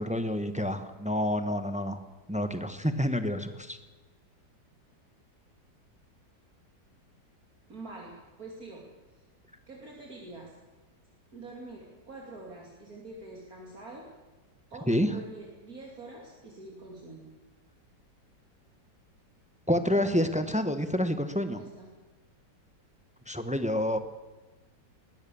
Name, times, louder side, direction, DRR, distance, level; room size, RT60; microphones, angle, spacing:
voice 1, 0.0-2.0 2.3-3.8 14.9-15.1 19.7-21.6 23.3-24.0, equal, 5° right, 9 dB, 1.0 m, -28 dB
voice 2, 7.7-8.1 8.4-8.8 9.7-10.5 11.3-14.1 14.7-17.3 21.5-21.9, right 2 dB, 55° right, -1 dB, 3.3 m, -45 dB
21.0 x 20.0 x 7.1 m, 1.2 s
omnidirectional pair, 1.9 m